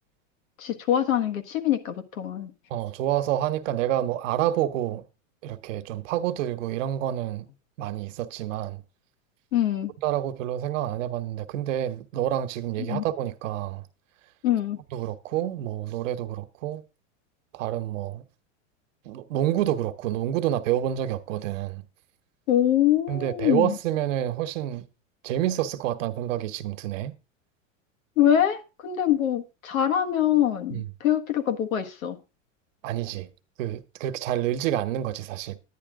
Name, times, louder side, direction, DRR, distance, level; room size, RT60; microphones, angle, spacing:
voice 1, 0.6-2.5 9.5-9.9 12.9-13.0 14.4-14.8 22.5-23.8 28.2-32.2, left 11 dB, 85° left, 1.5 m, -24 dB
voice 2, 2.7-5.0 5.4-7.5 7.8-8.8 10.0-13.8 14.9-16.8 17.5-18.2 19.0-21.8 23.1-24.9 25.2-27.2 30.7-30.9 32.8-33.3 33.6-35.6, right 12 dB, 70° right, 1.1 m, -28 dB
10.0 x 10.0 x 3.6 m
supercardioid pair, 130°, 39 cm